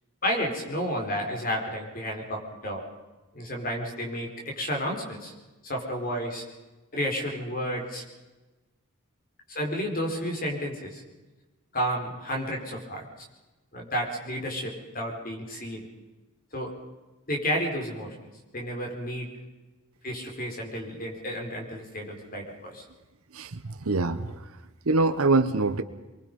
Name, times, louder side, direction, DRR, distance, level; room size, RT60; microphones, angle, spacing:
voice 1, 0.2-2.8 3.3-5.3 5.6-6.4 6.9-8.0 9.5-11.0 11.7-13.0 13.7-15.9 16.5-16.7 17.3-18.1 18.5-19.3 20.0-22.8, equal, 40° left, 1 dB, 4.3 m, -31 dB
voice 2, 23.3-24.4 24.8-25.8, right 3 dB, 80° right, 10 dB, 1.0 m, -24 dB
25.0 x 22.5 x 5.4 m, 1.1 s
head